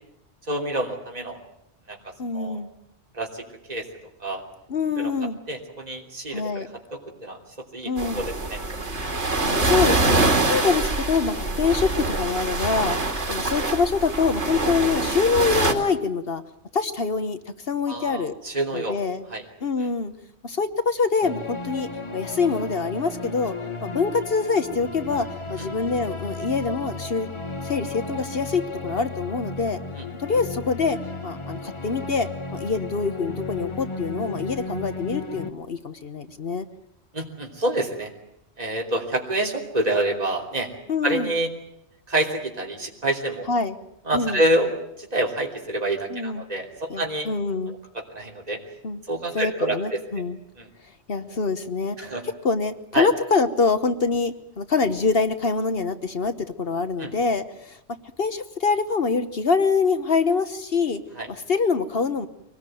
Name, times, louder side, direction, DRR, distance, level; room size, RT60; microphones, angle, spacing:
voice 1, 0.5-1.4 1.9-2.0 2.3-2.6 3.1-3.9 4.2-4.4 5.0-5.1 5.5-6.6 6.9-7.4 7.7-8.6 17.9-19.0 19.3-19.4 30.0-30.1 37.1-38.1 38.6-40.7 41.0-41.5 42.1-43.4 44.1-44.7 45.0-46.6 47.0-47.3 47.9-48.6 49.1-50.0 50.6-50.7 52.0-52.2 52.9-53.1 57.0-57.1 61.2-61.3, right 1 dB, 35° right, 0 dB, 3.3 m, -27 dB
voice 2, 2.2-2.7 4.7-5.4 6.3-6.7 7.8-8.2 9.4-13.0 13.3-16.4 16.7-17.4 17.7-18.3 18.7-19.3 19.6-20.1 20.4-23.5 23.8-27.3 27.6-29.8 30.2-31.0 31.2-36.6 40.9-41.3 43.5-43.8 44.1-44.4 46.1-46.4 46.9-47.8 48.8-49.0 49.3-50.4 51.1-52.1 52.4-57.8 58.2-61.0 61.3-62.3, left 4 dB, 60° left, 10 dB, 1.3 m, -25 dB
sound 1, 8.0-15.7, right 2 dB, 85° right, 2.9 m, -24 dB
sound 2, 21.2-35.5, left 3 dB, 25° left, 1.5 m, -34 dB
24.0 x 19.0 x 9.2 m, 0.79 s
omnidirectional pair, 1.1 m